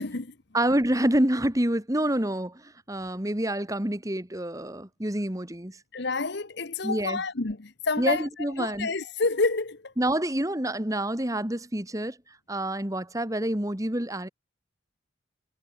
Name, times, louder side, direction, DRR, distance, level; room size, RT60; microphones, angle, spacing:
voice 1, 0.0-0.4 5.9-9.9, left 3 dB, 55° left, 1.1 m, -29 dB
voice 2, 0.5-5.8 6.8-7.2 8.0-8.9 10.0-12.2 12.5-14.3, right 1 dB, 15° right, 1.7 m, -27 dB
head